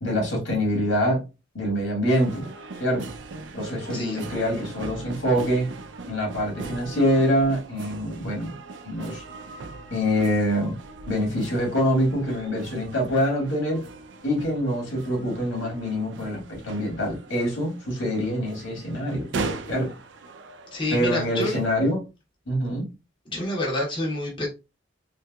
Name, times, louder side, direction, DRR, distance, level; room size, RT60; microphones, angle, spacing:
voice 1, 0.0-1.2 1.5-2.5 2.8-3.1 3.5-5.7 6.1-8.6 8.8-9.2 9.9-10.8 11.1-13.8 14.2-19.3 19.7-19.9 20.9-22.0 22.5-22.9, equal, 80° left, 1.6 m, -25 dB
sound 1, 2.2-21.7, right 3 dB, 65° right, 0.4 m, -39 dB
voice 2, 3.9-4.3 20.7-21.6 23.3-24.5, left 1 dB, 25° left, 0.7 m, -28 dB
3.3 x 2.9 x 2.2 m
head